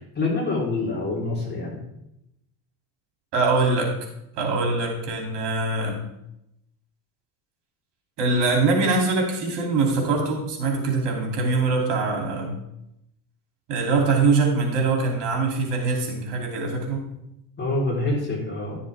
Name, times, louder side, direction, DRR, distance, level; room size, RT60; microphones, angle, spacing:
voice 1, 0.2-1.8 17.6-18.8, left 2 dB, 20° left, -3 dB, 3.5 m, -26 dB
voice 2, 3.3-3.9 4.3-6.0 8.2-12.5 13.7-17.0, right 3 dB, 60° right, 1 dB, 2.7 m, -23 dB
11.5 x 7.1 x 3.3 m, 0.83 s
supercardioid pair, 115°, 46 cm